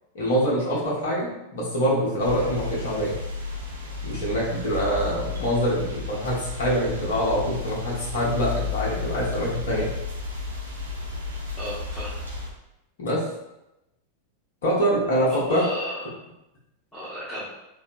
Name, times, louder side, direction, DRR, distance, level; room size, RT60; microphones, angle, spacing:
voice 1, 0.1-3.2 4.0-9.9 13.0-13.2 14.6-15.6, equal, 60° left, -5 dB, 1.0 m, -25 dB
sound 1, 2.2-12.5, left 4 dB, 80° right, 0.6 m, -33 dB
voice 2, 11.6-12.1 15.3-16.1 16.9-17.5, equal, 10° left, -10 dB, 0.8 m, -34 dB
3.2 x 2.0 x 2.6 m, 0.90 s
figure-of-eight pair, 90°, 0 cm